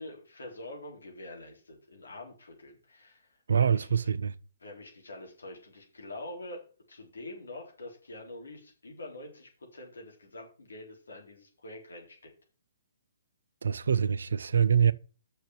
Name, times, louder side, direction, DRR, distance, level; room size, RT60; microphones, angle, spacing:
voice 1, 0.0-3.3 3.6-3.9 4.6-12.3, left 1 dB, 75° left, 4.2 m, -45 dB
voice 2, 3.5-4.3 13.6-14.9, right 7 dB, 70° right, 0.6 m, -25 dB
6.6 x 6.5 x 7.6 m
figure-of-eight pair, 125°, 0 cm